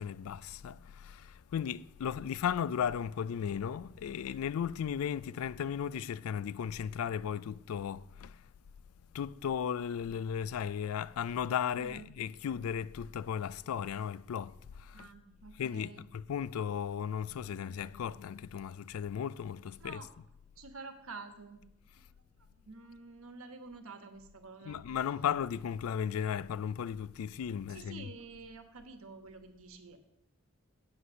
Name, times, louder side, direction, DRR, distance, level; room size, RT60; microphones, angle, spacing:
voice 1, 0.0-8.4 9.1-15.1 15.5-20.2 24.6-28.1, left 8 dB, 85° left, 0.3 m, -36 dB
voice 2, 11.7-12.1 14.9-16.1 19.8-20.1 20.6-21.6 22.6-24.8 27.7-30.0, right 4 dB, 75° right, 1.2 m, -49 dB
8.2 x 7.8 x 6.4 m
head